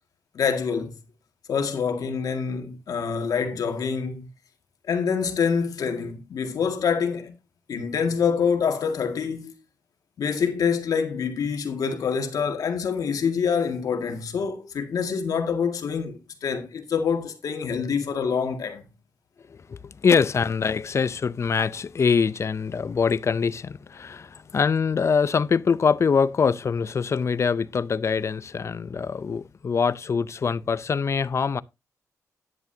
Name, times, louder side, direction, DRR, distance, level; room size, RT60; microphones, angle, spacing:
voice 1, 0.3-1.0 1.5-4.3 4.9-7.4 7.7-9.5 10.2-18.8, left 6 dB, 90° left, 2.0 m, -26 dB
voice 2, 19.5-31.6, left 5 dB, 50° left, 0.5 m, -24 dB
11.0 x 10.5 x 2.8 m
cardioid pair, 90°, 6 cm